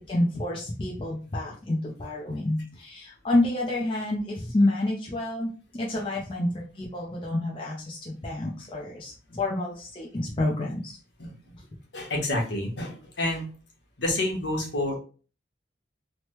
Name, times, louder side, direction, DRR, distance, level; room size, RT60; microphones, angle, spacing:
voice 1, 0.1-11.0, left 1 dB, 25° left, -3 dB, 0.5 m, -28 dB
voice 2, 11.9-13.5 14.0-14.9, left 1 dB, 65° left, -1 dB, 1.0 m, -28 dB
3.1 x 2.1 x 2.9 m, 0.37 s
head